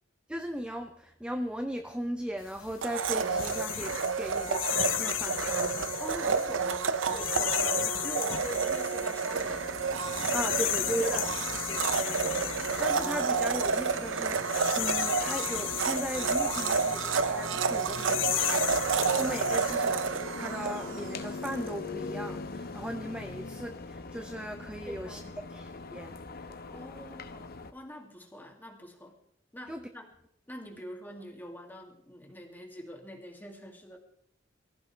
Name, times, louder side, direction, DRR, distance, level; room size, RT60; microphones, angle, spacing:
voice 1, 0.3-6.3 10.3-11.3 11.7-25.2 25.5-26.6 29.7-29.9, equal, 5° right, 7 dB, 0.7 m, -38 dB
sound 1, 2.5-19.8, left 11 dB, 80° left, 0.8 m, -35 dB
Domestic sounds home sounds, 2.8-21.6, right 5 dB, 80° right, 0.8 m, -30 dB
voice 2, 6.0-9.7 10.9-11.6 24.9-25.5 26.7-29.2 29.5-30.1 30.5-34.0, equal, 10° left, 2 dB, 2.4 m, -44 dB
sound 2, 9.3-27.7, left 3 dB, 55° left, 1.0 m, -42 dB
23.5 x 15.0 x 3.3 m, 0.70 s
head